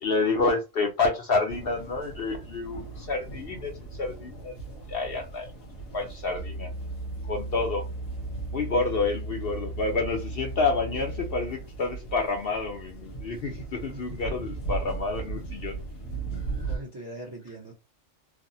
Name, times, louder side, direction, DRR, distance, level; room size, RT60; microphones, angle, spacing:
voice 1, 0.0-4.6 4.9-5.5 5.9-6.7 7.2-7.9 8.5-15.8 16.3-16.4, left 3 dB, 60° left, 0.7 m, -29 dB
sound 1, 1.5-16.8, right 4 dB, 75° left, 1.6 m, -39 dB
sound 2, 6.4-11.7, right 1 dB, 55° right, 1.1 m, -36 dB
voice 2, 13.9-14.7 16.6-17.7, right 1 dB, 25° right, 0.5 m, -42 dB
3.3 x 2.0 x 2.6 m
omnidirectional pair, 1.4 m